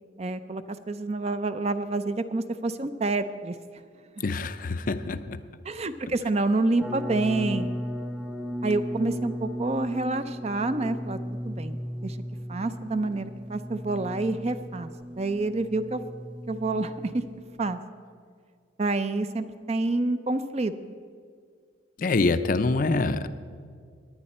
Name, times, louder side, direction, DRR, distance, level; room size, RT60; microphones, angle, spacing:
voice 1, 0.2-3.5 4.2-4.3 5.7-7.7 8.6-11.2 11.4-12.2 12.5-14.9 15.2-16.0 16.5-17.2 17.6-17.8 18.8-20.7, right 2 dB, 35° right, 11 dB, 0.5 m, -28 dB
voice 2, 4.2-5.4 22.0-23.3, left 3 dB, 45° left, 11 dB, 0.5 m, -25 dB
sound 1, 6.8-17.8, equal, 5° right, 0.8 m, -36 dB
18.5 x 10.0 x 4.3 m, 2.1 s
head